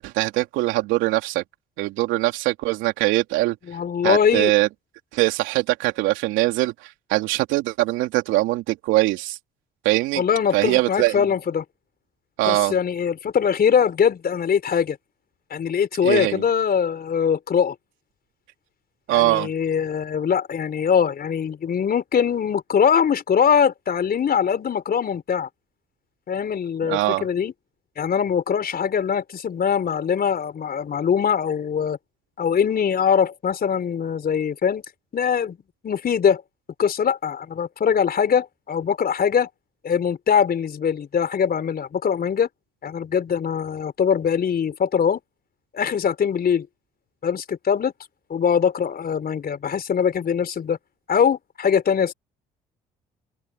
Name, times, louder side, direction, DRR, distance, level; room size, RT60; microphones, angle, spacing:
voice 1, 0.0-1.4 1.8-3.5 4.0-4.7 5.1-9.4 9.8-10.2 10.5-11.2 12.4-12.7 16.0-16.4 19.1-19.5 26.8-27.2, right 18 dB, 75° right, 2.9 m, -22 dB
voice 2, 3.7-4.5 10.2-11.6 12.5-15.0 15.5-17.7 19.1-25.5 26.3-27.5 28.0-32.0 32.4-34.8 35.1-35.6 35.8-36.4 36.8-39.5 39.8-42.5 42.8-45.2 45.7-46.7 47.2-47.9 48.3-50.8 51.1-52.1, left 7 dB, 50° left, 4.7 m, -22 dB
hypercardioid pair, 50°, 20 cm